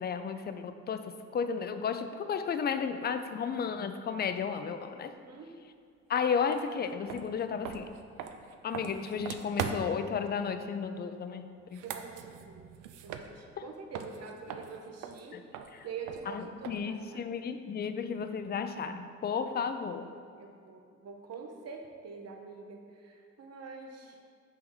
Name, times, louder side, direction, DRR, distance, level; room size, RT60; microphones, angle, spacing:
voice 1, 0.0-5.1 6.1-7.9 8.6-11.8 15.3-15.4 15.7-15.9 16.3-20.1, left 6 dB, 35° left, 9 dB, 0.4 m, -33 dB
voice 2, 5.1-5.5 11.8-12.7 13.0-15.4 15.8-17.2 20.4-24.2, right 5 dB, 55° right, 2 dB, 0.9 m, -45 dB
sound 1, 6.5-6.6 7.1-10.1 11.6-13.7 13.9-17.0, right 8 dB, 80° right, 0.5 m, -41 dB
6.0 x 3.5 x 5.5 m, 2.2 s
cardioid pair, 90°, 30 cm